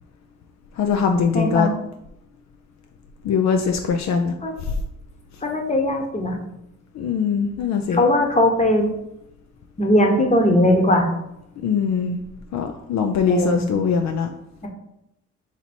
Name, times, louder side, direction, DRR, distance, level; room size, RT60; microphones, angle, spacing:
voice 1, 0.8-1.7 3.3-4.3 7.0-8.0 11.6-12.2 12.5-14.3, left 6 dB, 65° left, 5 dB, 0.5 m, -21 dB
voice 2, 1.3-1.7 4.4-4.5 5.4-6.4 7.9-8.9 9.8-11.1 13.3-13.6, left 1 dB, 25° left, 3 dB, 1.0 m, -19 dB
4.2 x 2.8 x 4.3 m, 0.83 s
cardioid pair, 90°, 30 cm